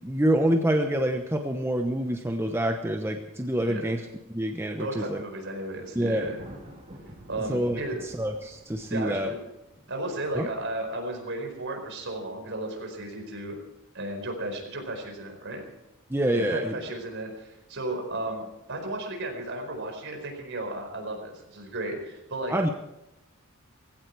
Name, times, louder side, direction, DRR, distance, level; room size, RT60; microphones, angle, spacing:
voice 1, 0.0-4.0 4.3-5.2 5.9-6.3 7.5-9.3 10.3-10.5 16.1-16.8 22.5-22.7, right 1 dB, 10° right, 4 dB, 0.9 m, -26 dB
voice 2, 4.8-6.4 7.3-8.0 8.9-9.5 9.9-13.6 13.9-15.6 16.3-22.5, right 1 dB, 55° right, 3 dB, 4.8 m, -34 dB
Thunder, 5.8-10.9, equal, 30° right, 3.5 m, -49 dB
18.0 x 16.5 x 4.7 m, 0.92 s
head